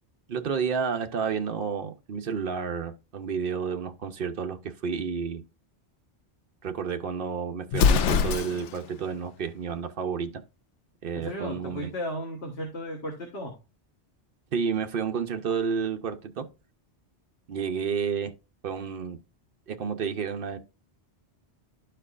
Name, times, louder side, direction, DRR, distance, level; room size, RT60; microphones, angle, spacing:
voice 1, 0.3-5.4 6.6-10.4 11.0-11.9 14.5-16.5 17.5-18.3 18.6-19.2 19.7-20.6, right 6 dB, 55° right, 0.8 m, -30 dB
Explosion, 7.7-8.9, left 6 dB, 90° left, 0.9 m, -23 dB
voice 2, 11.1-13.5, equal, 60° left, 1.6 m, -35 dB
12.5 x 4.5 x 2.4 m
omnidirectional pair, 1.2 m